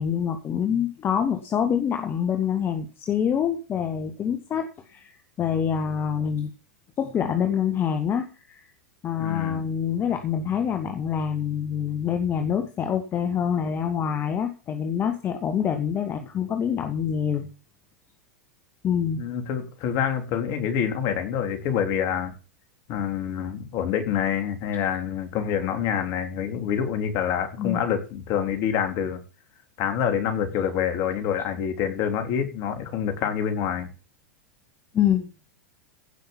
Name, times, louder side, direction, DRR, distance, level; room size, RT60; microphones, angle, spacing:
voice 1, 0.0-5.1 5.4-6.5 7.0-8.7 9.0-17.5 18.8-19.2 27.6-27.8 34.9-35.3, left 8 dB, 30° left, 7 dB, 1.9 m, -26 dB
voice 2, 9.2-9.6 19.1-22.3 22.9-29.2 29.8-33.9, left 8 dB, 50° left, 7 dB, 3.7 m, -26 dB
16.5 x 6.4 x 7.3 m, 0.34 s
hypercardioid pair, 95°, 8 cm